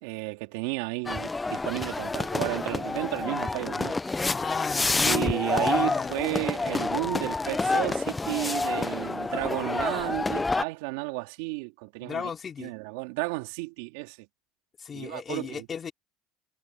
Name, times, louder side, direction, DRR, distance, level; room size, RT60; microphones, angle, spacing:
voice 1, 0.0-3.9 5.0-12.3 12.6-14.3 14.9-15.7, right 25 dB, 80° right, 3.6 m, -32 dB
sound 1, 1.1-10.6, left 3 dB, 15° left, 0.6 m, -28 dB
voice 2, 4.3-6.2 12.0-12.7 14.8-15.9, left 7 dB, 30° left, 3.4 m, -34 dB
supercardioid pair, 110°, 0 cm